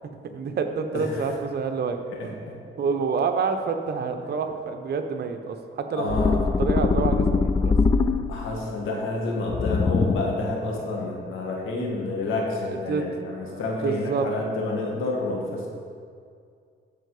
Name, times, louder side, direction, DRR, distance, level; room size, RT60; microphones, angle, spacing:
voice 1, 0.2-2.0 2.2-2.3 2.8-6.3 6.6-7.7 12.9-14.3, right 5 dB, 55° right, 6 dB, 1.0 m, -28 dB
voice 2, 0.9-1.3 2.1-2.6 6.0-6.4 8.3-15.7, left 2 dB, 90° left, -1 dB, 1.9 m, -29 dB
sound 1, 6.1-8.6 9.5-10.5, left 4 dB, 20° left, 0.4 m, -22 dB
13.5 x 4.7 x 5.0 m, 2.2 s
cardioid pair, 90°, 20 cm